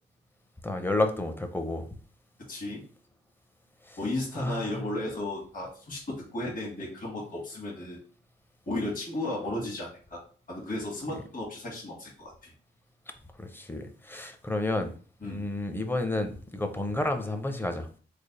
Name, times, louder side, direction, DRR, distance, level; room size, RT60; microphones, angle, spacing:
voice 1, 0.6-1.9 3.9-4.0 4.4-4.8 11.1-11.2 13.4-14.9 15.2-17.9, left 2 dB, 10° left, 0.5 m, -31 dB
voice 2, 2.5-2.8 4.0-6.0 6.3-8.0 8.7-10.2 10.5-12.5 15.2-15.4, left 1 dB, 45° left, 1.4 m, -34 dB
3.3 x 2.1 x 4.0 m
cardioid pair, 90°, 19 cm